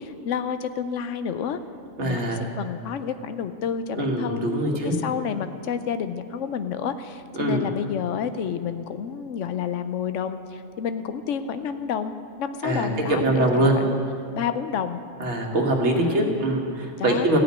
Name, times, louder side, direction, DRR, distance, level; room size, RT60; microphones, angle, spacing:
voice 1, 0.0-1.6 2.0-4.5 4.8-14.0 14.3-15.0 15.9-16.3 17.0-17.4, left 7 dB, 85° left, 11 dB, 1.0 m, -30 dB
voice 2, 2.0-2.4 3.9-4.9 7.3-7.6 12.6-12.9 13.2-13.7 15.2-17.4, right 1 dB, 70° right, 1 dB, 1.6 m, -23 dB
14.0 x 5.2 x 9.1 m, 2.4 s
omnidirectional pair, 1.2 m